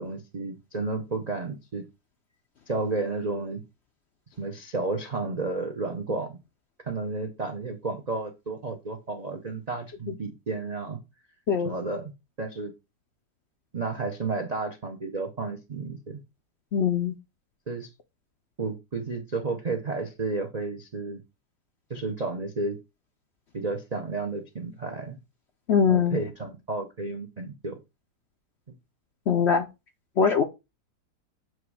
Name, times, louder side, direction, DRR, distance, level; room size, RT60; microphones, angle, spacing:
voice 1, 0.0-1.9 2.7-3.6 4.4-6.4 6.8-11.0 11.6-12.1 12.4-12.7 13.7-16.2 17.7-17.9 18.6-21.2 21.9-22.8 23.5-25.2 25.9-27.8 28.7-28.8, right 3 dB, 60° right, 0.4 m, -32 dB
voice 2, 16.7-17.2 25.7-26.2 29.3-29.7 30.2-30.4, left 6 dB, 65° left, 0.6 m, -22 dB
7.7 x 3.0 x 4.7 m
omnidirectional pair, 1.9 m